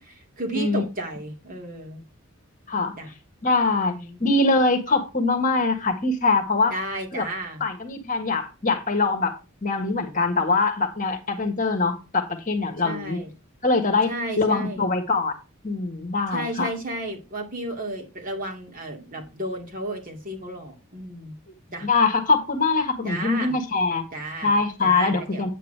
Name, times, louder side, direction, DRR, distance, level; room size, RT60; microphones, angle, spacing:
voice 1, 0.0-2.0 3.0-3.1 3.8-4.2 6.7-7.6 12.8-13.3 14.1-14.9 16.3-21.3 21.7-21.9 23.0-23.6 24.1-25.5, right 1 dB, 35° right, 2.5 m, -33 dB
voice 2, 3.4-6.7 7.1-7.2 7.6-9.3 9.6-13.2 13.6-14.1 14.4-15.3 15.6-16.7 21.8-24.0 24.4-25.5, left 3 dB, 35° left, 1.6 m, -23 dB
9.0 x 8.3 x 3.3 m
head